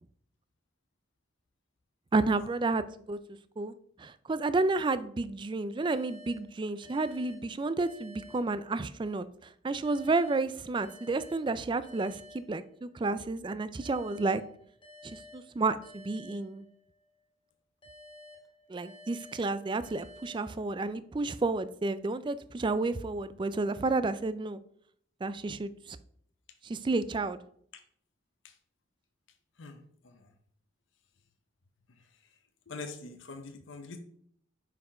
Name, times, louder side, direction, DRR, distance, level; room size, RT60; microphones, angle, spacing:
voice 1, 2.1-3.2 3.6-3.7 4.0-9.3 9.6-14.4 15.0-16.6 18.7-24.6 25.2-26.0 26.6-27.4, right 3 dB, 25° right, 14 dB, 0.3 m, -31 dB
sound 1, 5.8-9.1 9.8-13.1 13.8-17.1 17.8-21.1, left 1 dB, 25° left, 1.6 m, -53 dB
voice 2, 32.7-34.0, left 3 dB, 70° left, 6 dB, 0.7 m, -43 dB
5.6 x 4.7 x 4.8 m, 0.65 s
head